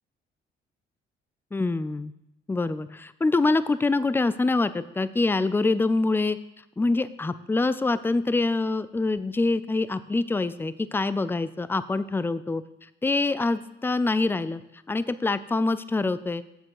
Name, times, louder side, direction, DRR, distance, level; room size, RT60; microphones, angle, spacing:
voice 1, 1.5-2.1 2.5-6.4 6.8-12.6 13.0-14.6 14.9-16.4, left 3 dB, 10° left, 15 dB, 0.4 m, -25 dB
7.4 x 6.4 x 6.5 m, 0.88 s
cardioid pair, 90°, 20 cm